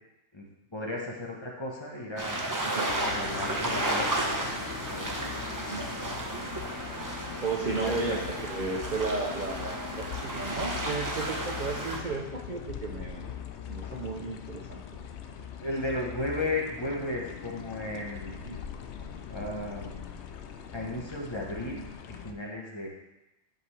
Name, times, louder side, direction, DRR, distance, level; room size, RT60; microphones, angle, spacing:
voice 1, 0.7-2.4 3.0-4.2 4.9-5.3 7.7-8.2 8.7-8.8 15.6-18.4 19.3-20.0 20.7-22.9, left 1 dB, 25° left, -3 dB, 1.1 m, -35 dB
sound 1, 2.2-12.0, right 1 dB, 20° right, 0.8 m, -33 dB
sound 2, 2.9-22.3, left 8 dB, 85° left, 0.9 m, -41 dB
voice 2, 7.4-13.3 13.7-14.8 18.4-18.6, right 3 dB, 45° right, 0 dB, 0.8 m, -34 dB
10.5 x 5.3 x 3.3 m, 0.97 s
omnidirectional pair, 1.1 m